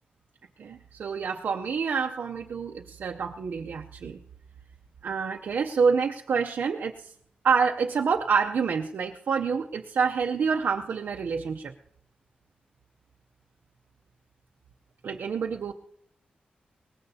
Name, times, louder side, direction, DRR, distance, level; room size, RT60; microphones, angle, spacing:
voice 1, 0.6-4.2 5.0-6.9 7.4-11.7 15.0-15.7, right 5 dB, 75° right, 1 dB, 0.6 m, -27 dB
22.0 x 19.0 x 2.8 m, 0.66 s
wide cardioid pair, 105°, 3 cm